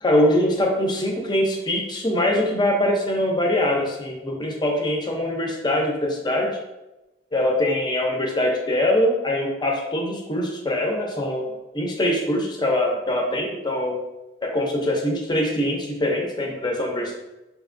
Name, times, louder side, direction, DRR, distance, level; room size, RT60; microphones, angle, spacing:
voice 1, 0.0-6.6 7.3-14.0 14.4-17.2, left 1 dB, 25° left, 1 dB, 0.6 m, -23 dB
5.1 x 2.9 x 2.5 m, 1.0 s
head